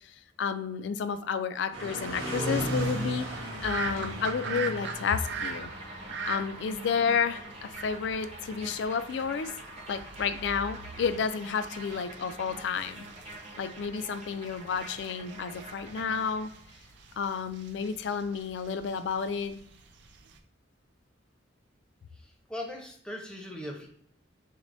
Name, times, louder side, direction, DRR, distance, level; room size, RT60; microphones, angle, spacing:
voice 1, 0.0-3.3 3.6-5.7 6.3-9.5 9.9-13.0 13.6-16.5 17.2-19.6, left 6 dB, 65° left, 12 dB, 0.3 m, -31 dB
sound 1, 1.7-15.7, right 1 dB, 90° right, 1.2 m, -39 dB
sound 2, 3.6-20.4, right 5 dB, 65° right, 0.5 m, -43 dB
sound 3, 3.9-16.7, right 1 dB, 35° right, 0.9 m, -46 dB
voice 2, 22.1-23.9, left 1 dB, 5° left, 0 dB, 0.7 m, -40 dB
6.3 x 2.1 x 2.6 m, 0.65 s
head